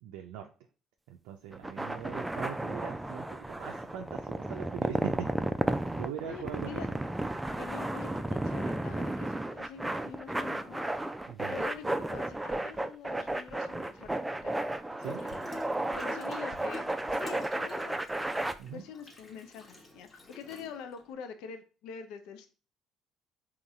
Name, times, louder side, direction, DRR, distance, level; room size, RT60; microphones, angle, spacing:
voice 1, 0.0-0.5 1.1-5.3 5.9-6.8 11.3-11.6 15.0-15.2 18.6-18.8, right 9 dB, 75° right, 2 dB, 0.4 m, -41 dB
sound 1, 1.5-18.5, right 1 dB, 10° right, 0.4 m, -33 dB
voice 2, 6.2-6.9 7.6-10.9 11.5-14.6 15.0-18.1 18.7-22.5, left 7 dB, 70° left, 8 dB, 0.5 m, -45 dB
Water tap faucet / Sink (filling or washing), 15.0-21.1, left 1 dB, 30° left, 1.0 m, -49 dB
4.0 x 2.9 x 3.5 m, 0.35 s
hypercardioid pair, 60°, 0 cm